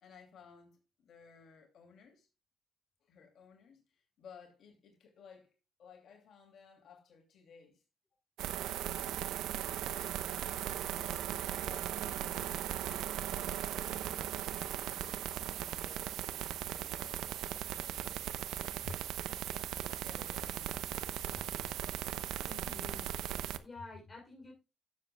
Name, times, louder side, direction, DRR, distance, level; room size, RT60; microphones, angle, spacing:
voice 1, 0.0-2.3 3.0-5.5 5.8-7.8 8.6-9.4 9.6-10.4 11.0-12.9 13.3-17.3 17.7-18.5 18.8-18.9 20.0-21.0 21.3-21.7, left 5 dB, 65° left, 2.6 m, -57 dB
sound 1, 8.4-23.6, right 11 dB, 85° right, 0.6 m, -38 dB
voice 2, 22.4-23.1 23.6-24.5, left 3 dB, 25° left, 3.5 m, -50 dB
16.5 x 7.2 x 2.3 m
cardioid pair, 90°, 0 cm